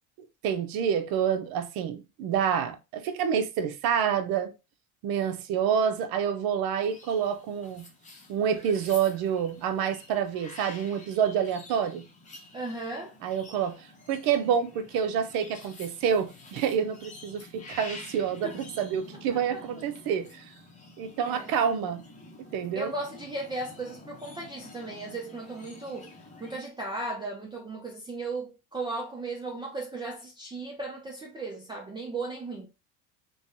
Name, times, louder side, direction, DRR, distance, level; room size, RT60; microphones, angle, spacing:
voice 1, 0.4-4.5 5.0-7.9 8.3-12.0 13.2-13.7 14.1-20.4 21.0-22.0 22.5-22.9, right 8 dB, 65° right, 0.7 m, -28 dB
sound 1, 6.8-26.6, left 3 dB, 20° left, 0.8 m, -49 dB
voice 2, 12.5-13.2 18.4-18.6 19.1-19.6 21.2-21.5 22.7-26.1 26.4-32.7, right 2 dB, 10° right, 0.4 m, -36 dB
3.3 x 2.3 x 2.6 m
cardioid pair, 120°, 38 cm